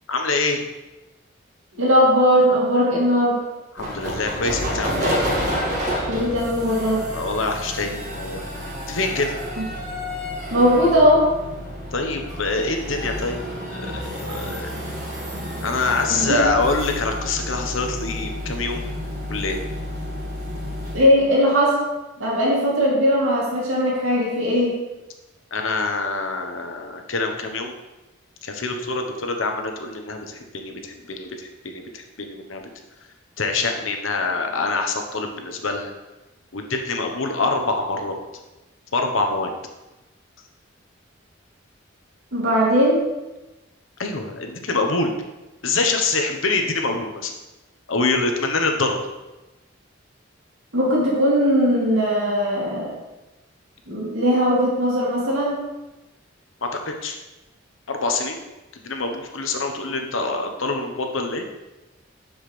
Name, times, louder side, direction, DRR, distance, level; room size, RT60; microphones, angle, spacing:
voice 1, 0.1-0.6 3.7-5.2 7.1-8.4 8.9-9.3 11.9-13.4 13.7-14.7 15.6-18.8 19.3-19.6 25.5-27.7 28.4-32.6 33.4-35.9 36.5-38.2 38.9-39.5 44.0-45.1 45.6-47.3 47.9-49.0 56.6-57.2 57.9-58.4 58.8-61.5, left 3 dB, 85° left, 4 dB, 1.0 m, -25 dB
voice 2, 1.8-3.4 6.1-7.0 9.6-9.7 10.5-11.3 16.1-16.5 20.9-21.8 22.2-24.8 42.3-43.1 50.7-53.0 53.9-55.6, equal, 85° right, -5 dB, 2.6 m, -19 dB
sound 1, 3.8-21.1, equal, 40° right, 2.1 m, -30 dB
7.3 x 7.2 x 3.3 m, 1.1 s
head